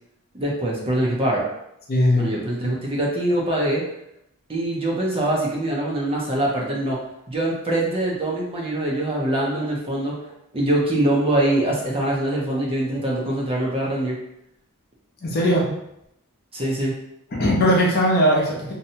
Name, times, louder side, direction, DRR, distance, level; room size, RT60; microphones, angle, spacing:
voice 1, 0.3-1.4 2.1-3.8 4.5-7.0 7.3-14.2 16.5-16.9, right 1 dB, 25° right, -3 dB, 0.5 m, -23 dB
voice 2, 1.9-2.3 15.2-15.7 17.3-18.7, equal, 45° left, -3 dB, 0.6 m, -19 dB
2.7 x 2.2 x 2.7 m, 0.80 s
head